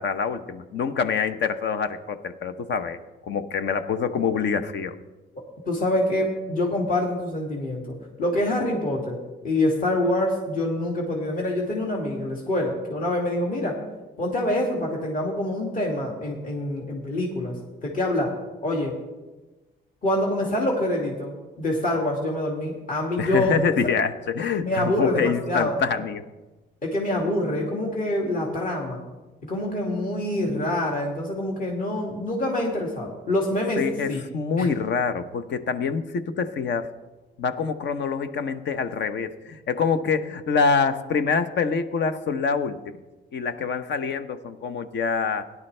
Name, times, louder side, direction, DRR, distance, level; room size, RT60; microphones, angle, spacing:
voice 1, 0.0-3.0 3.2-5.0 23.2-26.2 33.8-36.9 37.4-43.0 43.3-45.4, left 5 dB, 65° left, 10 dB, 0.9 m, -25 dB
voice 2, 5.6-13.8 14.2-18.3 18.6-19.0 20.0-23.5 23.8-23.9 24.6-25.8 26.8-29.0 29.4-34.2 34.6-34.7, left 1 dB, 45° left, -2 dB, 2.4 m, -26 dB
17.0 x 11.0 x 3.3 m, 1.1 s
cardioid pair, 90°, 20 cm